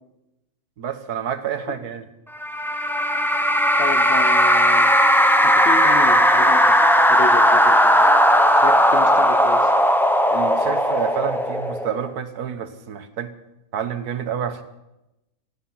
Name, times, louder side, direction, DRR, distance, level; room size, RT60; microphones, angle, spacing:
voice 1, 0.8-2.0 10.3-13.3 13.7-14.6, right 8 dB, 60° right, 10 dB, 1.5 m, -28 dB
sound 1, 2.4-12.1, equal, 5° left, 0.4 m, -17 dB
voice 2, 3.8-5.0 5.4-8.1 8.5-9.7, left 4 dB, 40° left, 9 dB, 1.3 m, -31 dB
16.0 x 15.0 x 5.8 m, 0.93 s
omnidirectional pair, 1.9 m